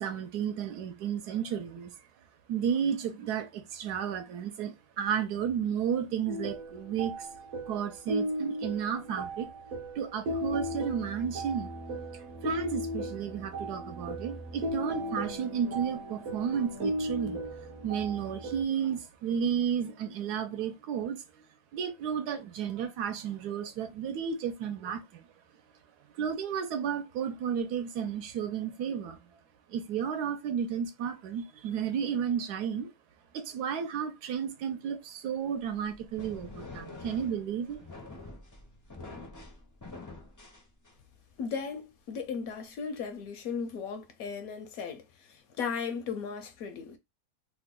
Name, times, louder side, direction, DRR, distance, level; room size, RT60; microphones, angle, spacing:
voice 1, 0.0-1.9 2.5-7.3 7.7-9.5 10.0-11.7 12.4-17.4 17.8-21.2 21.7-25.2 26.2-29.2 29.7-32.9 33.3-37.8, right 8 dB, 75° right, 1.1 m, -32 dB
sound 1, 6.3-18.6, equal, 55° right, 0.9 m, -36 dB
sound 2, 35.6-41.2, left 3 dB, 30° left, 0.3 m, -46 dB
voice 2, 41.4-47.0, left 6 dB, 70° left, 0.9 m, -36 dB
3.1 x 2.1 x 3.6 m
omnidirectional pair, 1.8 m